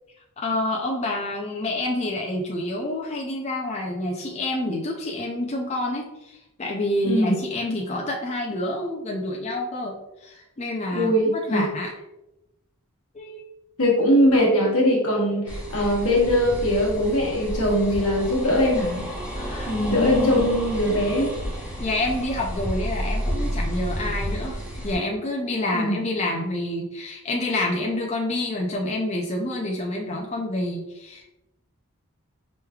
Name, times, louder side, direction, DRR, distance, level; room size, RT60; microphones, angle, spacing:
voice 1, 0.4-9.9 10.2-11.9 13.1-13.4 19.3-19.7 20.0-20.5 21.8-24.6 24.8-31.3, left 1 dB, 30° left, -1 dB, 0.4 m, -28 dB
voice 2, 7.0-7.4 10.9-11.7 13.8-19.0 19.7-21.3 25.7-26.0, equal, 85° left, -2 dB, 1.2 m, -21 dB
sound 1, 15.5-24.9, equal, 5° right, 0.7 m, -31 dB
4.6 x 3.1 x 2.3 m, 0.93 s
head